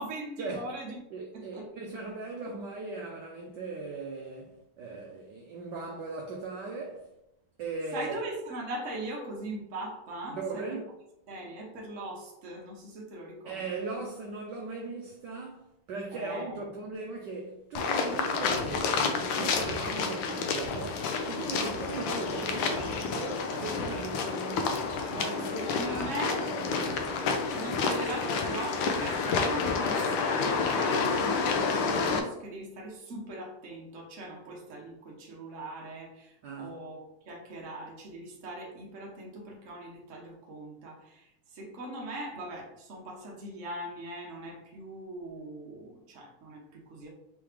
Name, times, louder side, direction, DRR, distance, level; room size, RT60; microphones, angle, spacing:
voice 1, 0.0-0.9 1.3-1.7 7.9-10.8 11.3-13.9 16.1-16.6 25.1-26.4 27.5-47.1, right 1 dB, 45° right, 1.1 m, -40 dB
voice 2, 1.1-7.1 7.6-8.2 10.3-10.9 13.4-27.2 36.4-36.8, right 3 dB, 70° right, 1.1 m, -39 dB
sound 1, 17.7-32.2, left 4 dB, 75° left, 1.3 m, -29 dB
4.7 x 3.1 x 3.6 m
omnidirectional pair, 2.4 m